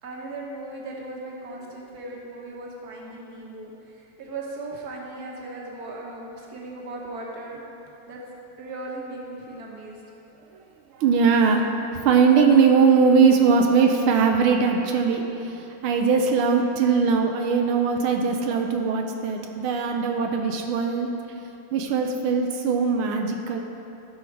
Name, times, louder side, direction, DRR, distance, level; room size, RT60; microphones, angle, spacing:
voice 1, 0.0-7.6 8.1-8.2 8.6-10.0 18.8-18.9, right 2 dB, 50° right, -2 dB, 1.7 m, -37 dB
voice 2, 10.9-21.1 21.7-23.6, right 5 dB, 90° right, 3 dB, 1.5 m, -20 dB
15.0 x 5.6 x 4.6 m, 2.9 s
omnidirectional pair, 2.3 m